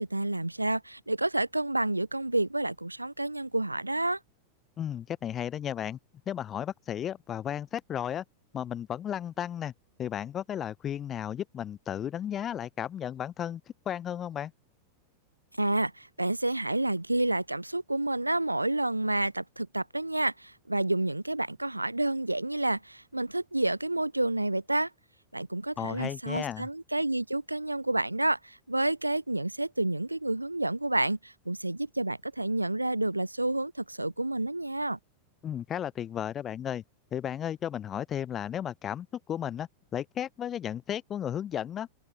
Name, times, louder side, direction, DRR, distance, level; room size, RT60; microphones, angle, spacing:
voice 1, 0.0-4.2 15.6-24.9 25.3-35.0, right 2 dB, 85° right, 0.7 m, -29 dB
voice 2, 4.8-6.0 6.3-8.2 8.5-9.7 10.0-13.6 13.9-14.5 25.8-26.7 35.4-36.8 37.1-41.9, left 10 dB, 25° left, 0.6 m, -34 dB
open air
figure-of-eight pair, 90°, 0 cm